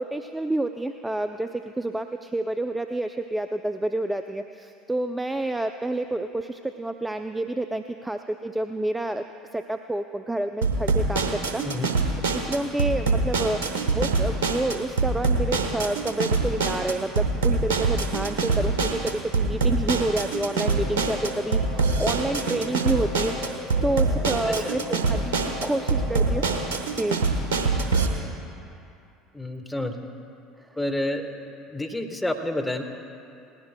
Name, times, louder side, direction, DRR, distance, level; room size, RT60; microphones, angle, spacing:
voice 1, 0.0-9.2 9.5-11.6 12.3-13.6 13.9-23.3 23.8-26.4 26.9-27.2, right 1 dB, 10° right, 7 dB, 0.4 m, -29 dB
sound 1, 10.6-28.1, right 3 dB, 75° right, 1.2 m, -25 dB
sound 2, 20.7-26.7, left 2 dB, 45° left, 2.9 m, -38 dB
voice 2, 24.4-24.7 29.3-30.1 30.8-32.8, left 1 dB, 10° left, 4 dB, 1.2 m, -29 dB
19.5 x 15.5 x 2.2 m, 2.6 s
hypercardioid pair, 70°, 0 cm